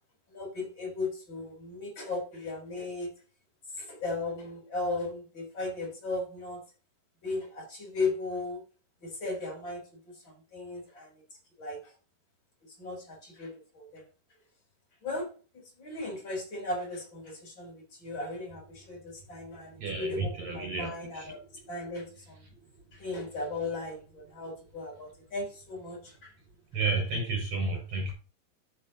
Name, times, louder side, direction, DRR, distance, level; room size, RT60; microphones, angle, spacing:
voice 1, 0.3-3.1 3.8-6.6 7.2-8.6 9.0-11.1 11.6-11.8 12.8-14.0 15.0-15.3 15.5-21.4 21.7-22.4 22.9-26.3, left 3 dB, 30° left, 3.7 m, -36 dB
voice 2, 19.8-21.4 22.5-22.6 26.7-28.1, right 3 dB, 30° right, 6.4 m, -32 dB
14.0 x 6.6 x 2.8 m
omnidirectional pair, 5.0 m